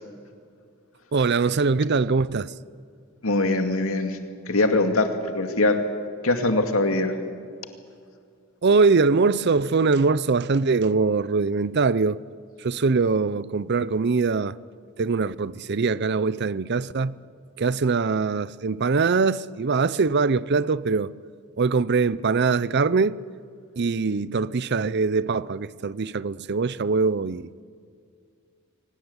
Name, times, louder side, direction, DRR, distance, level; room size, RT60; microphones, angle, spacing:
voice 1, 1.1-2.5 8.6-12.2 12.6-14.6 15.0-17.2 17.6-21.1 21.6-23.2 23.8-27.5, right 4 dB, 55° right, 0.6 m, -22 dB
voice 2, 3.2-4.2 4.5-5.8 6.2-7.1, left 2 dB, 85° left, 2.3 m, -22 dB
24.5 x 18.5 x 9.7 m
head